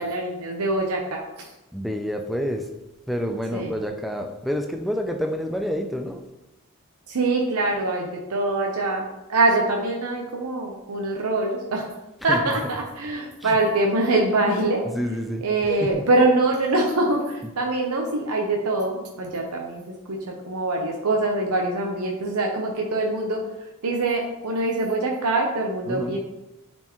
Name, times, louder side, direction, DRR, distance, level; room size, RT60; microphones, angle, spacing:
voice 1, 0.0-1.5 3.5-3.8 7.1-11.9 12.2-14.8 15.4-19.8 20.1-23.4 23.8-26.2, right 2 dB, 85° right, 0.8 m, -24 dB
voice 2, 1.7-2.6 3.1-6.2 12.3-12.4 14.9-15.4 15.7-15.9 25.9-26.2, equal, ahead, 0.4 m, -28 dB
9.0 x 4.4 x 3.0 m
head